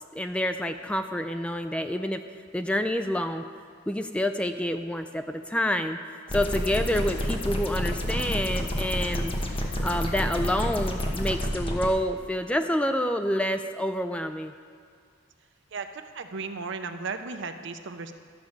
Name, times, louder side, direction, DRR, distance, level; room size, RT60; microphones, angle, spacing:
voice 1, 0.1-2.2 2.5-3.5 3.9-6.0 6.3-9.3 9.8-14.5, left 1 dB, 5° left, 7 dB, 0.3 m, -28 dB
sound 1, 6.3-11.9, equal, 30° left, 1.1 m, -29 dB
voice 2, 15.7-18.1, right 4 dB, 65° right, 8 dB, 0.6 m, -35 dB
12.5 x 5.2 x 7.1 m, 2.1 s
head